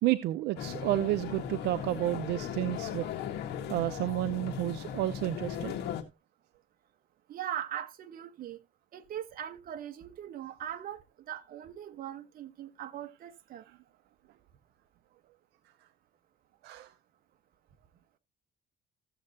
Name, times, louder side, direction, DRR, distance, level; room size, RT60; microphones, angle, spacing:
voice 1, 0.0-3.1 3.7-5.7 13.7-13.8 16.6-16.9, right 15 dB, 85° right, 0.7 m, -31 dB
sound 1, 0.6-6.0, left 9 dB, 75° left, 1.8 m, -37 dB
voice 2, 7.3-8.6 8.9-13.7, right 10 dB, 60° right, 1.2 m, -40 dB
15.0 x 7.6 x 2.8 m
cardioid pair, 110°, 17 cm